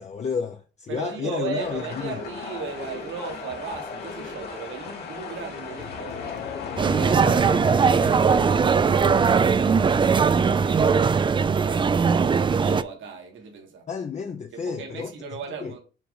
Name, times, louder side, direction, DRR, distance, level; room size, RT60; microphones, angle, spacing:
voice 1, 0.0-2.2 13.9-15.1 15.6-15.7, left 6 dB, 35° left, 0.6 m, -31 dB
voice 2, 0.9-6.5 6.7-13.9 14.5-15.8, right 6 dB, 75° right, 1.6 m, -37 dB
sound 1, 1.6-11.0, left 4 dB, 55° left, 2.2 m, -39 dB
Crowd, 5.6-10.7, left 7 dB, 90° left, 0.9 m, -38 dB
sound 2, 6.8-12.8, right 5 dB, 25° right, 0.3 m, -20 dB
7.1 x 2.5 x 5.5 m
cardioid pair, 90°, 20 cm